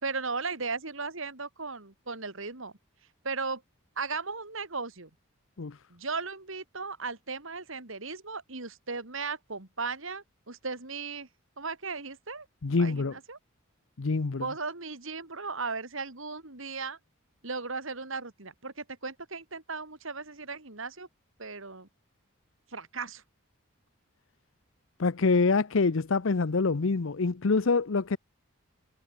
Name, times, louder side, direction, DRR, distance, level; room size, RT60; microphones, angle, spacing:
voice 1, 0.0-2.7 3.2-3.6 4.0-5.1 5.9-11.3 11.6-12.5 12.8-13.4 14.4-17.0 17.4-21.1 21.4-21.9 22.7-23.2, right 4 dB, 65° right, 2.9 m, -36 dB
voice 2, 12.6-13.1 14.0-14.5 25.0-28.2, left 4 dB, 65° left, 0.7 m, -25 dB
head